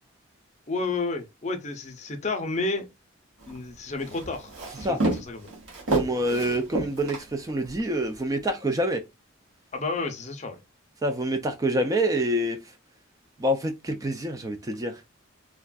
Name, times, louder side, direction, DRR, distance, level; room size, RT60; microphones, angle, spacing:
voice 1, 0.7-2.9 3.5-4.5 4.8-5.5 9.7-10.6, left 3 dB, 35° left, 0.5 m, -31 dB
Walk footsteps, 3.4-7.8, right 2 dB, 85° right, 1.4 m, -30 dB
voice 2, 5.9-9.0 11.0-12.7 13.4-15.0, right 1 dB, 15° right, 0.3 m, -26 dB
3.3 x 2.4 x 2.2 m
head